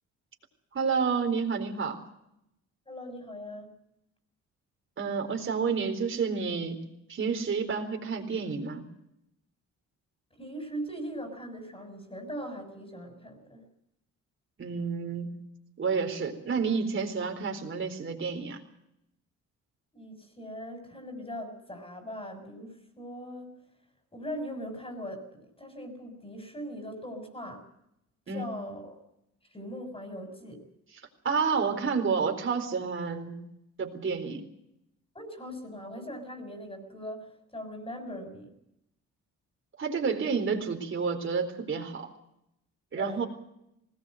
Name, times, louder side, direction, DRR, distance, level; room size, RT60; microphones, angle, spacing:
voice 1, 0.7-2.0 5.0-6.8 7.1-8.8 14.6-15.4 15.8-18.6 28.3-28.5 31.2-33.4 33.8-34.4 39.8-42.1 42.9-43.2, right 5 dB, 40° right, 3 dB, 4.2 m, -30 dB
voice 2, 2.9-3.7 10.4-13.7 19.9-23.5 24.1-27.6 28.3-29.0 29.5-30.6 35.1-38.5 42.9-43.2, equal, 20° left, 7 dB, 6.6 m, -40 dB
20.5 x 18.5 x 7.8 m, 0.81 s
cardioid pair, 90°, 30 cm